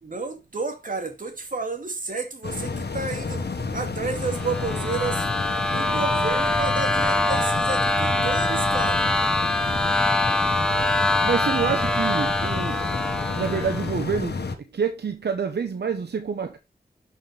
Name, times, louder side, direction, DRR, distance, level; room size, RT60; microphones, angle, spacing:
voice 1, 0.0-3.4 3.7-5.3 5.6-9.1, right 4 dB, 55° right, 2.6 m, -31 dB
sound 1, 2.4-14.6, left 4 dB, 80° left, 1.5 m, -30 dB
sound 2, 4.2-13.9, left 2 dB, 5° left, 1.3 m, -24 dB
voice 2, 11.2-12.8 13.3-14.5 14.7-16.6, right 6 dB, 80° right, 1.0 m, -27 dB
11.5 x 6.4 x 3.4 m
wide cardioid pair, 105°, 17 cm